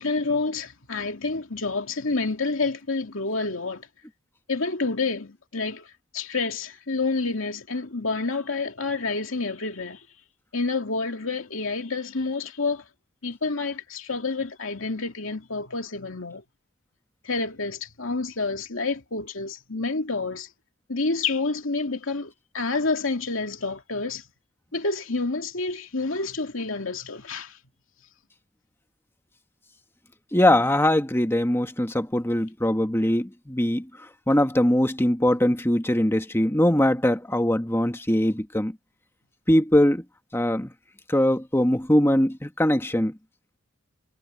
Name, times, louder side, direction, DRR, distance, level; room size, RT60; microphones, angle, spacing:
voice 1, 0.0-3.9 4.5-10.0 10.5-12.8 13.2-16.4 17.2-20.5 20.9-24.3 24.7-27.6, left 3 dB, 80° left, 2.4 m, -28 dB
voice 2, 30.3-33.9 34.3-38.8 39.5-40.0 40.3-40.7 41.1-43.1, left 1 dB, 10° left, 1.4 m, -21 dB
head